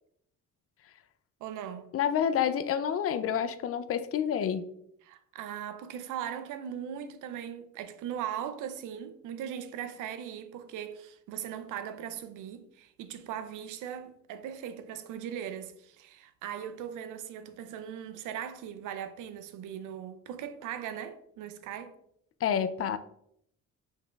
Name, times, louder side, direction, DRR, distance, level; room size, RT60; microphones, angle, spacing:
voice 1, 1.4-1.9 5.0-21.9, right 9 dB, 85° right, 0.5 m, -39 dB
voice 2, 1.9-4.7 22.4-23.0, left 8 dB, 50° left, 0.4 m, -28 dB
5.3 x 3.7 x 2.3 m
cardioid pair, 90°, 30 cm